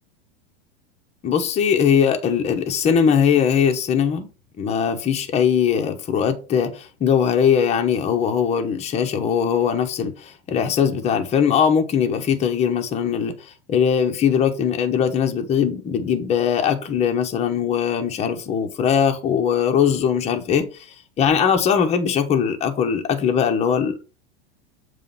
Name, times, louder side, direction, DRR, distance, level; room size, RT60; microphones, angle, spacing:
voice 1, 1.2-4.3 4.6-24.1, left 7 dB, 20° left, 0.9 m, -20 dB
7.3 x 3.2 x 5.5 m
supercardioid pair, 145°, 32 cm